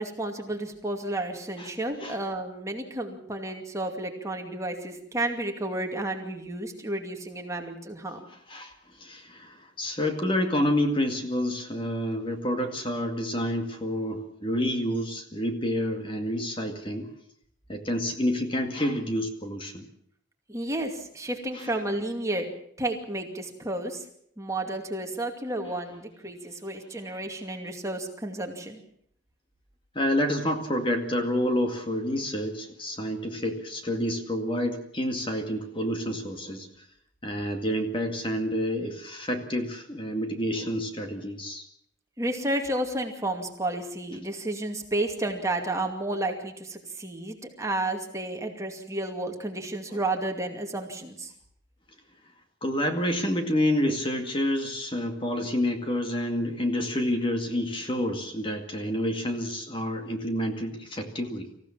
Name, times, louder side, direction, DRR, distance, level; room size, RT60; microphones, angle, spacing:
voice 1, 0.0-8.2 20.5-22.5 22.8-24.0 24.4-28.8 42.2-51.3, right 1 dB, 15° right, 3 dB, 2.4 m, -31 dB
voice 2, 9.0-17.1 17.7-19.9 21.5-21.7 29.9-36.7 37.2-41.7 52.6-61.5, equal, 25° left, 5 dB, 2.2 m, -28 dB
26.0 x 15.5 x 7.3 m, 0.69 s
head